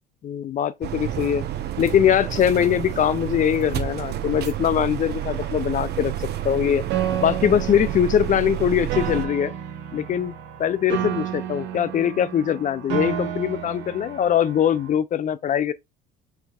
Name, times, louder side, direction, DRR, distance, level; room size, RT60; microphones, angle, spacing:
voice 1, 0.2-1.4 1.8-6.8 7.2-9.5 9.9-15.7, left 9 dB, 40° left, 0.4 m, -22 dB
sound 1, 0.8-9.3, right 11 dB, 55° right, 0.8 m, -30 dB
Piano, 6.9-14.9, right 9 dB, 80° right, 1.0 m, -31 dB
4.6 x 3.9 x 2.3 m
supercardioid pair, 85°, 20 cm